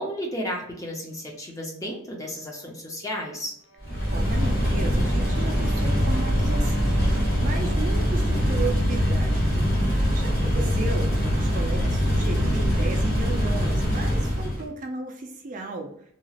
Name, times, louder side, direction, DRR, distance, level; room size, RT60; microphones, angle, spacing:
voice 1, 0.0-3.5, equal, 15° left, 0 dB, 0.6 m, -33 dB
sound 1, 3.6-8.3, right 5 dB, 65° left, 0.5 m, -43 dB
sound 2, 3.8-14.7, equal, 45° left, 1.4 m, -23 dB
voice 2, 4.1-15.9, right 2 dB, 40° right, 3 dB, 0.4 m, -35 dB
2.9 x 2.4 x 2.8 m, 0.69 s
head